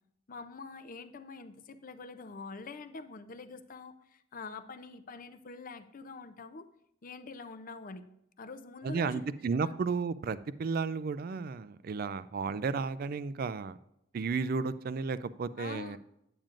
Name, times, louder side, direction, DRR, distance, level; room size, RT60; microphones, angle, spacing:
voice 1, 0.3-6.7 7.0-8.1 8.4-9.3 9.6-9.7 15.6-16.0, left 4 dB, 40° left, 11 dB, 0.5 m, -45 dB
voice 2, 8.8-13.8 14.1-16.0, right 4 dB, 45° right, 15 dB, 0.3 m, -33 dB
8.9 x 8.8 x 2.5 m, 0.80 s
head